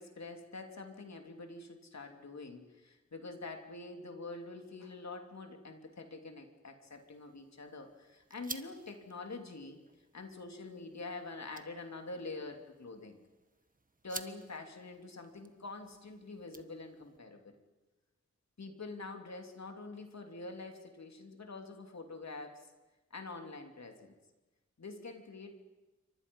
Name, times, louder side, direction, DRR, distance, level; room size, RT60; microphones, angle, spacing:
voice 1, 0.0-9.8 10.1-13.2 14.0-17.6 18.6-22.7 23.1-24.1 24.8-25.6, left 3 dB, 65° left, 4 dB, 3.2 m, -46 dB
sound 1, 6.8-17.2, right 3 dB, 30° right, 1.4 m, -53 dB
28.5 x 24.5 x 5.5 m, 1.1 s
wide cardioid pair, 65°, 29 cm